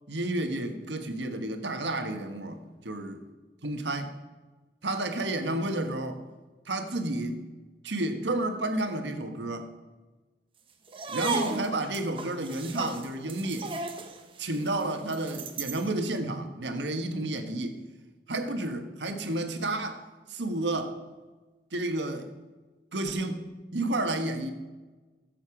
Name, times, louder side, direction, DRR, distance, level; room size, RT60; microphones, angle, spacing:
voice 1, 0.1-3.2 3.6-4.1 4.8-6.2 6.6-7.4 7.8-9.7 11.1-13.7 14.4-17.8 18.3-20.0 20.3-20.9 21.7-22.3 22.9-23.4 23.7-24.5, right 2 dB, 85° right, 6 dB, 1.4 m, -31 dB
sound 1, 10.9-15.9, right 3 dB, 30° right, 1.0 m, -36 dB
15.5 x 7.8 x 5.0 m, 1.2 s
head